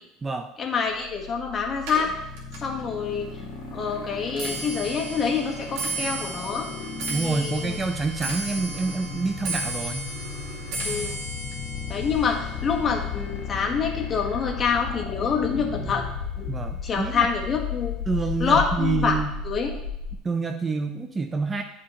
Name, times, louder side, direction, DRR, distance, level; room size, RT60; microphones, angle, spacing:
voice 1, 0.6-2.1 2.6-3.3 3.7-6.7 7.2-7.8 10.8-11.2 11.9-16.0 16.4-16.5 16.8-18.0 18.4-19.1 19.4-19.8, left 6 dB, 25° left, 1 dB, 1.1 m, -26 dB
sound 1, 0.9-18.1, left 4 dB, 50° left, 1.2 m, -39 dB
Clock, 1.8-15.1 15.5-15.9 16.7-16.8 17.1-17.5 17.8-17.9, right 2 dB, 85° right, 1.6 m, -35 dB
sound 2, 5.2-20.2, left 7 dB, 80° left, 1.3 m, -35 dB
voice 2, 7.1-10.0 16.5-17.3 18.1-19.4 20.2-21.6, right 4 dB, 20° right, 7 dB, 0.3 m, -27 dB
9.4 x 5.0 x 2.8 m, 0.84 s
cardioid pair, 140°, 0 cm